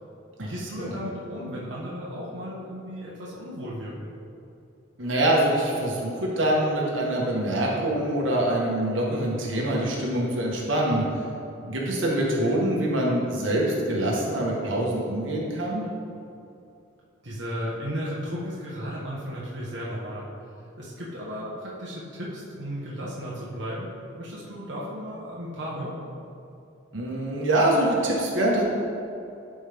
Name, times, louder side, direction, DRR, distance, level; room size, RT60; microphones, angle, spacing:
voice 1, 0.4-4.1 17.2-20.3 20.8-23.9 24.2-26.0, equal, 60° right, -7 dB, 1.3 m, -34 dB
voice 2, 5.0-11.0 11.6-15.8 26.9-28.6, right 1 dB, 80° right, -3 dB, 1.6 m, -24 dB
11.5 x 5.2 x 3.6 m, 2.6 s
head